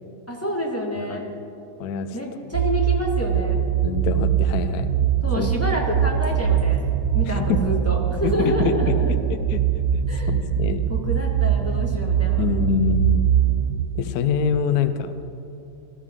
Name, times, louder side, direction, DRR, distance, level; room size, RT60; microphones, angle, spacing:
voice 1, 0.3-1.2 2.1-3.6 5.2-6.8 7.1-9.1 10.1-10.3 10.9-12.4, equal, 10° left, -2 dB, 1.4 m, -28 dB
voice 2, 1.8-2.2 3.8-5.0 5.4-5.5 7.3-7.6 8.2-10.8 12.4-13.3 13.9-15.1, left 6 dB, 65° left, 10 dB, 0.9 m, -25 dB
sound 1, 2.5-13.8, right 10 dB, 65° right, 1.0 m, -22 dB
19.0 x 13.0 x 3.7 m, 2.7 s
omnidirectional pair, 2.3 m